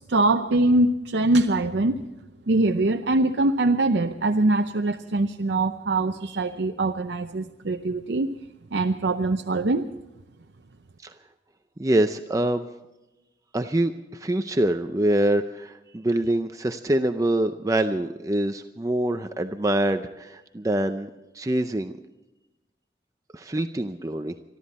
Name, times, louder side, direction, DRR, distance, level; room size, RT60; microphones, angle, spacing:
voice 1, 0.0-1.9 2.5-8.3 8.7-9.9, right 2 dB, 75° right, 5 dB, 0.7 m, -23 dB
voice 2, 11.8-12.7 13.5-21.1 21.3-21.9 23.3-24.3, right 1 dB, 20° right, 8 dB, 0.5 m, -25 dB
25.5 x 12.5 x 4.2 m, 0.99 s
head